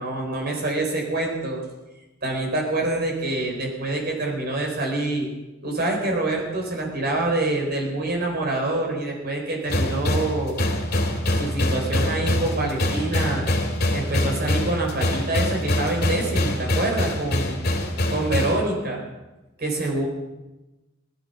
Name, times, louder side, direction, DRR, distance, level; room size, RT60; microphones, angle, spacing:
voice 1, 0.0-1.6 2.2-5.3 5.6-10.6 11.3-13.5 13.9-17.6 18.1-19.0 19.6-20.0, right 2 dB, 50° right, 0 dB, 4.3 m, -26 dB
sound 1, 9.7-18.6, left 1 dB, 50° left, 2.5 m, -24 dB
17.0 x 13.0 x 5.6 m, 1.1 s
head